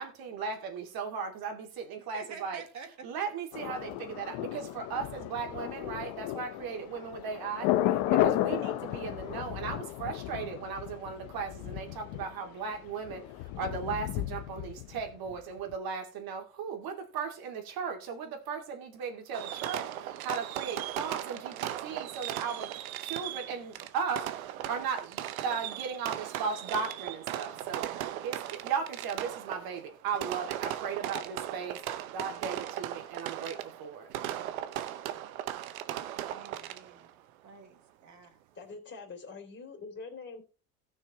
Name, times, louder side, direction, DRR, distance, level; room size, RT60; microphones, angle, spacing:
voice 1, 0.0-2.6 3.0-22.7 23.0-27.9 28.2-34.1, right 6 dB, 60° right, 2.7 m, -37 dB
voice 2, 2.0-2.9 36.3-37.1 37.4-38.5, right 6 dB, 45° right, 3.3 m, -49 dB
Thunder, 3.5-15.4 15.7-15.8, left 14 dB, 70° left, 1.0 m, -33 dB
Fireworks, 19.3-37.1, right 12 dB, 85° right, 0.9 m, -37 dB
voice 3, 38.5-40.4, left 4 dB, 30° left, 3.2 m, -44 dB
18.0 x 6.4 x 3.1 m
hypercardioid pair, 65°, 40 cm